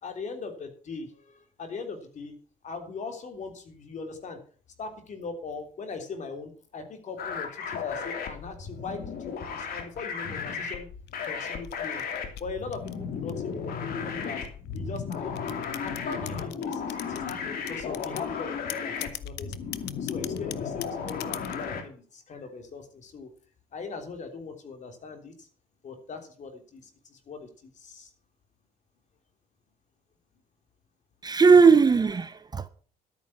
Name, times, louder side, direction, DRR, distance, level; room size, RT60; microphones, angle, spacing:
voice 1, 0.0-2.4 2.6-4.4 4.8-10.9 11.2-12.0 12.4-14.4 14.7-15.5 15.8-19.5 20.0-23.3 23.7-25.5 25.8-28.1, left 4 dB, 45° left, 3.5 m, -40 dB
sound 1, 7.2-21.8, left 6 dB, 60° left, 3.1 m, -34 dB
sound 2, 11.1-13.5 14.2-17.4 17.7-18.3 18.7-21.7, left 16 dB, 85° left, 0.9 m, -40 dB
voice 2, 31.2-32.7, right 5 dB, 25° right, 0.6 m, -18 dB
12.5 x 9.2 x 6.1 m
cardioid pair, 110°, 17 cm